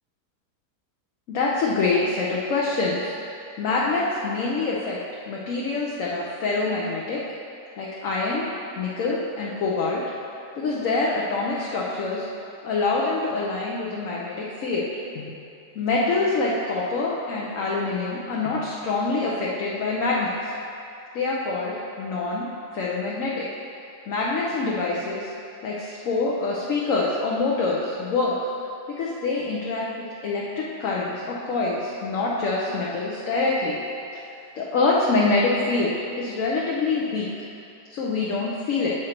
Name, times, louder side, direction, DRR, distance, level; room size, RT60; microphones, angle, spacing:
voice 1, 1.3-3.1 3.6-5.0 5.3-7.2 7.8-8.5 8.8-10.0 10.5-12.3 12.6-14.9 15.1-15.3 15.7-20.5 21.1-22.5 22.7-23.5 24.1-25.3 25.6-28.3 28.9-29.8 30.2-33.8 34.6-37.3 37.9-38.9, left 3 dB, 60° left, -4 dB, 1.0 m, -25 dB
7.4 x 5.0 x 4.3 m, 2.7 s
omnidirectional pair, 1.8 m